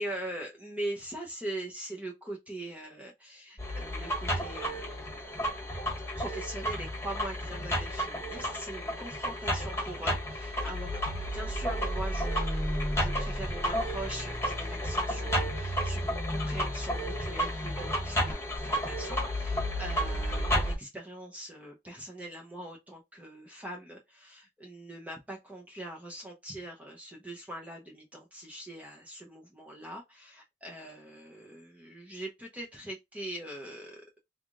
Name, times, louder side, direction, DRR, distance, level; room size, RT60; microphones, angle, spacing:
voice 1, 0.0-5.1 6.2-34.0, right 1 dB, 10° right, 0.7 m, -42 dB
sound 1, 3.6-20.8, equal, 15° left, 1.5 m, -32 dB
3.5 x 3.5 x 2.4 m
head